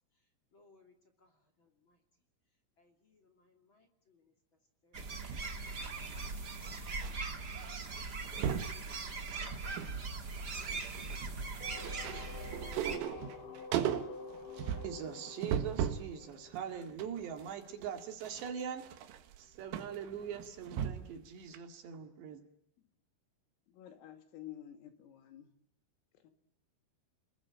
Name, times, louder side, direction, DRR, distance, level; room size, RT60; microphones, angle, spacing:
voice 1, 0.5-2.0 2.8-4.3 4.8-5.3 6.7-7.3 7.8-8.9, left 3 dB, 35° left, 4 dB, 2.3 m, -68 dB
sound 1, 4.9-13.0, right 3 dB, 45° right, 1.3 m, -40 dB
sound 2, 5.0-7.1 7.4-7.7 7.9-8.8 9.3-10.0 10.3-16.1 16.5-21.2 21.5-21.6, right 9 dB, 80° right, 4.1 m, -38 dB
sound 3, 11.6-17.3, left 4 dB, 65° left, 4.3 m, -49 dB
voice 2, 14.8-18.9 19.4-22.4, right 8 dB, 60° right, 6 dB, 3.9 m, -42 dB
voice 3, 23.8-25.5 26.2-26.3, left 12 dB, 80° left, 8 dB, 4.9 m, -50 dB
29.0 x 21.5 x 9.0 m, 0.70 s
omnidirectional pair, 6.0 m